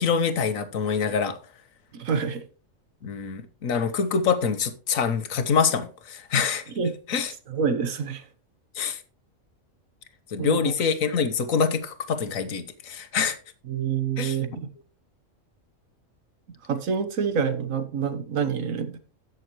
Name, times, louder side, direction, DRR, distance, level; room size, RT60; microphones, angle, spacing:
voice 1, 0.0-1.4 3.0-6.6 7.1-7.3 8.7-9.0 10.3-13.4 14.2-14.4, left 6 dB, 85° left, 1.4 m, -25 dB
voice 2, 1.9-2.4 6.8-6.9 7.5-8.2 10.4-10.7 13.7-14.7 16.7-19.0, right 6 dB, 80° right, 1.5 m, -27 dB
15.5 x 6.4 x 3.0 m
omnidirectional pair, 1.4 m